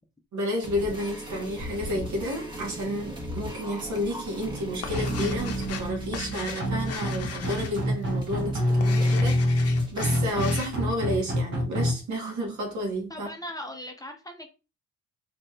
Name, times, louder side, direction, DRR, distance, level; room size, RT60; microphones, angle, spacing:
voice 1, 0.3-13.3, equal, 70° right, 1.3 m, -31 dB
sound 1, 0.6-10.6, equal, 15° right, 1.0 m, -38 dB
sound 2, 4.2-10.9, left 6 dB, 50° left, 0.6 m, -39 dB
sound 3, 4.9-11.9, equal, 40° right, 1.1 m, -26 dB
voice 2, 13.1-14.5, left 1 dB, 10° left, 0.6 m, -38 dB
3.1 x 2.8 x 2.3 m
cardioid pair, 90°, 30 cm